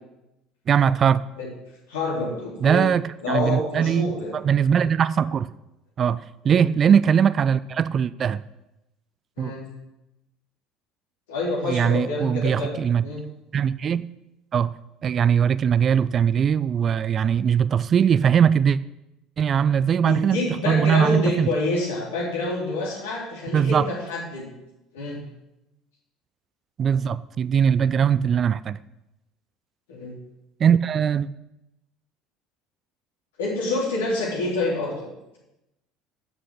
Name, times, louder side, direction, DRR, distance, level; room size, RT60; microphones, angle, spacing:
voice 1, 0.7-1.2 2.6-5.5 6.0-8.4 9.4-9.5 11.6-13.0 13.5-14.0 14.5-14.7 15.0-18.8 19.4-21.5 23.5-23.9 26.8-28.8 30.6-31.3, right 7 dB, 35° right, 16 dB, 0.4 m, -21 dB
voice 2, 1.9-2.9 3.2-4.3 6.4-6.7 9.4-9.6 11.3-13.2 20.0-24.5 24.9-25.2 29.9-30.1 33.4-35.1, left 2 dB, 70° left, -4 dB, 3.8 m, -27 dB
11.5 x 7.7 x 6.5 m, 0.92 s
figure-of-eight pair, 60°, 0 cm